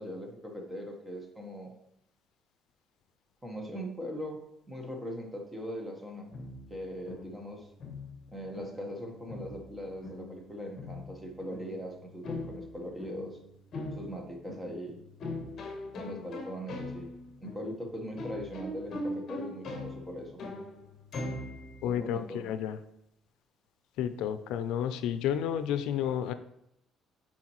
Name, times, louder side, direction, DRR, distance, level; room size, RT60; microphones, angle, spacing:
voice 1, 0.0-1.7 3.4-6.3 6.7-7.7 8.3-13.4 13.9-15.0 15.9-17.1 17.4-20.4 21.8-22.5, equal, 10° right, 1 dB, 1.2 m, -40 dB
sound 1, 6.3-22.0, left 2 dB, 45° left, 1.3 m, -42 dB
voice 2, 21.8-22.8 24.0-26.3, left 9 dB, 85° left, 11 dB, 0.4 m, -31 dB
9.5 x 4.4 x 3.1 m, 0.79 s
cardioid pair, 145°, 0 cm